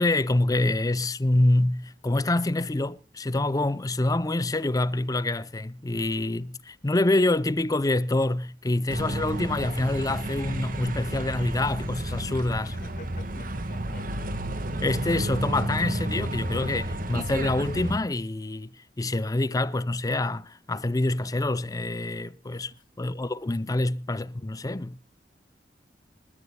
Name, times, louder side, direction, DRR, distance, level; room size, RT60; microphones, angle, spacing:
voice 1, 0.0-12.8 14.8-18.7 19.0-22.7 23.0-25.0, left 2 dB, 20° left, 0.6 m, -26 dB
sound 1, 8.9-18.0, right 1 dB, 50° right, 1.7 m, -31 dB
voice 2, 12.6-14.8 22.5-22.8, left 2 dB, 50° left, 2.3 m, -49 dB
26.5 x 13.5 x 2.3 m
head